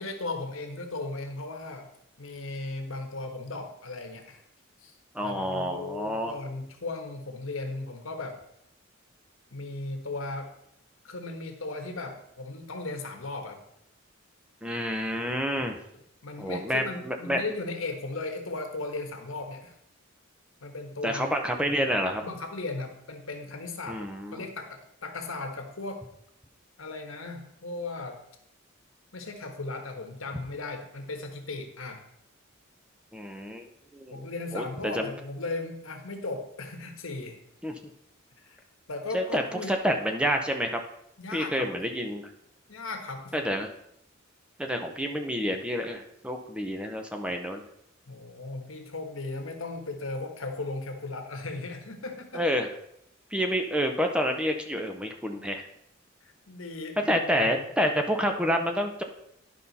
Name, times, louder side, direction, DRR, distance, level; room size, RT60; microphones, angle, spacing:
voice 1, 0.0-1.9 2.2-4.4 4.8-4.9 5.2-8.4 9.5-10.5 11.0-13.6 16.2-19.7 20.6-21.3 21.6-21.9 22.2-24.0 24.3-26.0 26.8-28.2 29.1-32.0 34.1-37.4 38.4-38.6 38.9-39.7 41.2-41.8 42.7-43.4 48.1-52.4 56.2-57.7, left 3 dB, 75° left, 4 dB, 1.3 m, -37 dB
voice 2, 5.1-6.3 14.6-15.8 16.4-17.4 21.0-22.2 23.9-24.4 33.1-33.7 33.9-34.3 34.5-35.1 37.6-37.7 39.1-39.4 39.7-40.8 41.3-42.2 43.3-43.7 44.6-47.6 52.3-52.7 53.3-55.6 57.1-59.0, equal, 5° right, 4 dB, 0.6 m, -28 dB
10.5 x 5.5 x 4.1 m, 0.76 s
head